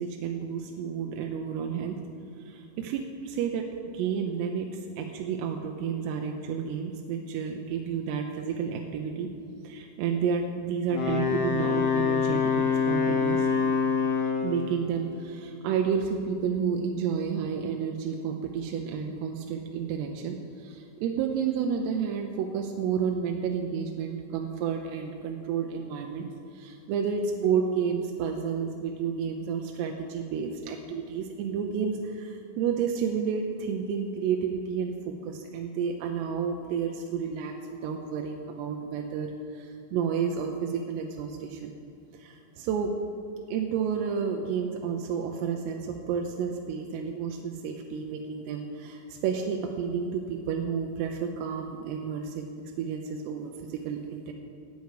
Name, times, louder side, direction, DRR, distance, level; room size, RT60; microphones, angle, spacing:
voice 1, 0.0-2.0 2.5-3.7 3.9-4.7 5.0-9.3 9.6-13.5 14.4-20.4 20.6-26.3 26.5-37.5 37.8-41.7 42.2-43.0 43.5-52.4 52.8-54.3, right 6 dB, 80° right, 3 dB, 2.7 m, -31 dB
Wind instrument woodwind instrument, 10.9-14.6, left 6 dB, 60° left, 2.1 m, -25 dB
17.5 x 8.1 x 4.9 m, 2.4 s
omnidirectional pair, 5.2 m